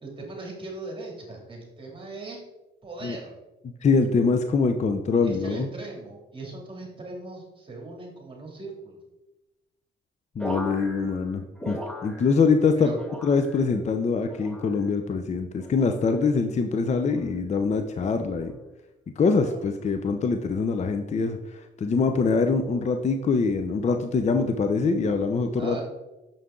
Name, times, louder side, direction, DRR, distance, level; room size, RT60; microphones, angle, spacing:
voice 1, 0.0-2.4 2.8-3.3 5.2-9.0 10.4-10.6 12.7-13.0 19.4-19.6 25.6-25.8, right 2 dB, 25° right, -1 dB, 2.6 m, -39 dB
voice 2, 3.8-5.7 10.4-12.9 13.2-18.5 19.2-25.8, left 4 dB, 35° left, 6 dB, 0.6 m, -24 dB
sound 1, 10.4-12.6 12.9-13.8 14.2-14.9 15.6-16.0 16.9-17.3 18.2-18.5, equal, 5° left, 1.1 m, -39 dB
6.8 x 5.7 x 3.7 m, 1.0 s
cardioid pair, 90°, 20 cm